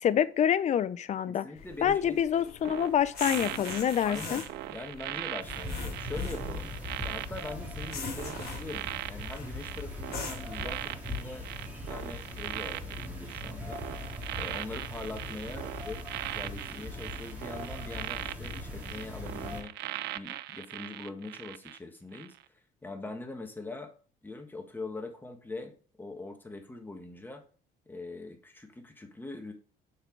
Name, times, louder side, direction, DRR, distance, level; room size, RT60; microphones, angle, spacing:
voice 1, 0.0-1.4 1.8-4.4, left 9 dB, 45° left, 0.5 m, -26 dB
voice 2, 1.3-2.2 4.0-6.7 7.0-11.5 11.9-13.8 14.3-19.7 20.1-23.9 24.2-27.4 27.9-29.5, left 2 dB, 10° left, 1.4 m, -42 dB
sound 1, 1.5-10.7, left 4 dB, 65° left, 3.0 m, -43 dB
sound 2, 2.6-21.8 22.1-22.4, right 16 dB, 80° right, 0.4 m, -40 dB
sound 3, 5.4-19.6, left 2 dB, 10° right, 2.1 m, -40 dB
6.7 x 4.4 x 4.5 m
cardioid pair, 110°, 17 cm